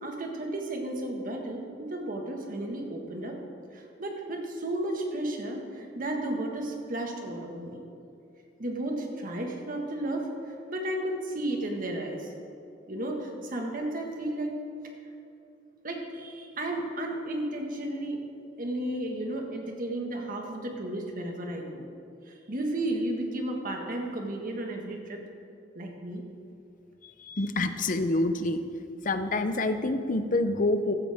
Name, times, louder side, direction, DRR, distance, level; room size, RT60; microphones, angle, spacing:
voice 1, 0.0-3.4 3.7-7.8 8.6-12.3 12.9-14.5 15.8-18.2 18.6-21.9 22.3-25.2 25.7-26.2, right 1 dB, 50° right, 1 dB, 1.7 m, -33 dB
voice 2, 27.0-28.6 29.0-30.9, left 2 dB, 45° left, 9 dB, 0.7 m, -27 dB
15.5 x 12.5 x 3.6 m, 2.6 s
head